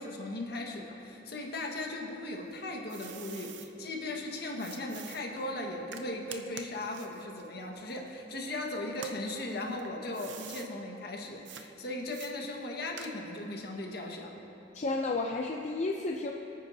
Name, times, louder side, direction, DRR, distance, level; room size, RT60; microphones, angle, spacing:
voice 1, 0.0-14.4, left 2 dB, 60° left, 1 dB, 1.6 m, -38 dB
sound 1, 2.3-3.7 4.6-8.5 8.9-10.7 11.4-11.7 12.1-13.5, right 8 dB, 70° right, 0.7 m, -47 dB
voice 2, 14.7-16.3, left 3 dB, 40° left, 1 dB, 0.5 m, -32 dB
27.0 x 9.1 x 2.8 m, 3.0 s
head